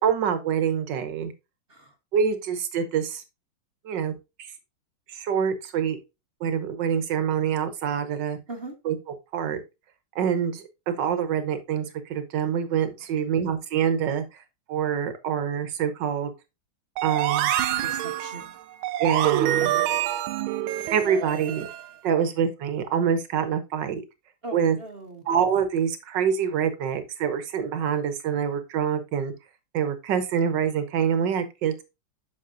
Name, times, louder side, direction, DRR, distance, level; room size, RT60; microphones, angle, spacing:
voice 1, 0.0-1.3 2.1-3.2 3.8-4.1 4.4-4.5 5.1-6.0 6.4-8.4 8.8-9.0 9.3-9.6 10.1-14.2 14.7-16.3 17.0-17.5 19.0-19.7 20.9-21.7 22.0-24.0 24.5-24.8 25.3-29.3 29.7-31.8, right 7 dB, 65° right, 1.7 m, -25 dB
sound 1, 17.0-21.9, right 12 dB, 90° right, 1.5 m, -26 dB
voice 2, 17.8-18.5 19.6-20.0 24.4-25.2, right 2 dB, 35° right, 1.2 m, -39 dB
8.7 x 6.4 x 2.6 m
omnidirectional pair, 2.2 m